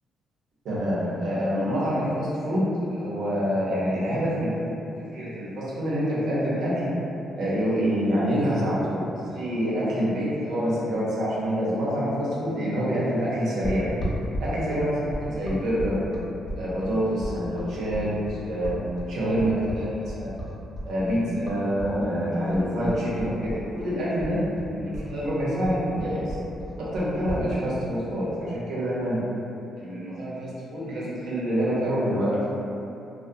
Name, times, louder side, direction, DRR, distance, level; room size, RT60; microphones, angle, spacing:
voice 1, 0.6-4.6 5.0-6.9 7.4-13.9 14.4-16.0 16.6-18.8 19.1-20.3 20.8-24.4 24.8-26.4 26.8-29.2 29.8-32.5, equal, 75° right, -8 dB, 0.7 m, -26 dB
sound 1, 13.6-21.9 22.2-23.9 24.2-27.4, equal, 35° left, 0.5 m, -34 dB
2.3 x 2.1 x 2.6 m, 2.8 s
cardioid pair, 90°, 0 cm